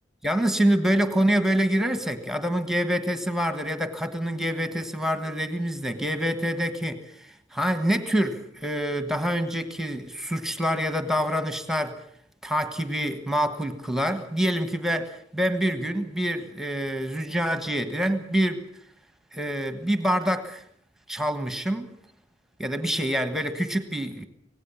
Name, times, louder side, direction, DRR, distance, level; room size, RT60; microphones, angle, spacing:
voice 1, 0.2-11.9 12.4-18.6 19.3-20.6 21.1-21.9 22.6-24.3, equal, ahead, 9 dB, 1.4 m, -26 dB
25.5 x 18.0 x 7.2 m, 0.65 s
head